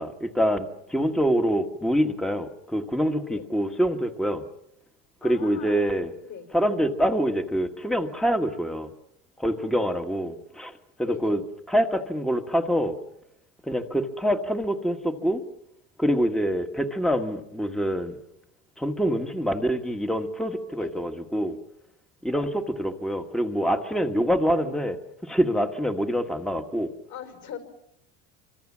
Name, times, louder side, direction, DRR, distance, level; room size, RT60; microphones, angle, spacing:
voice 1, 0.0-4.5 5.2-6.1 6.5-8.9 9.4-11.4 11.7-13.0 13.6-15.4 16.0-18.2 18.8-21.6 22.2-25.0 25.2-26.9, equal, ahead, 7 dB, 1.5 m, -25 dB
voice 2, 5.2-6.5 11.0-11.4 20.7-21.1 27.1-27.6, left 9 dB, 50° left, 7 dB, 5.4 m, -39 dB
26.5 x 25.0 x 7.4 m, 0.80 s
supercardioid pair, 115°, 35 cm